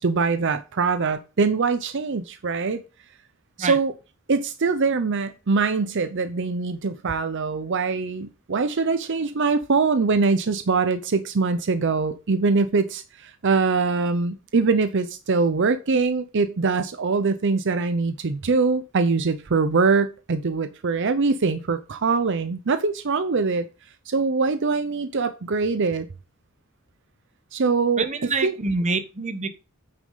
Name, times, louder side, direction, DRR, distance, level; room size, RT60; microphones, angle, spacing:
voice 1, 0.0-2.8 3.6-3.9 4.3-23.7 24.1-26.1 27.5-28.1 28.4-28.5, right 4 dB, 60° right, 0.6 m, -23 dB
voice 2, 28.0-29.5, right 3 dB, 35° right, 1.0 m, -26 dB
9.1 x 6.2 x 4.0 m
head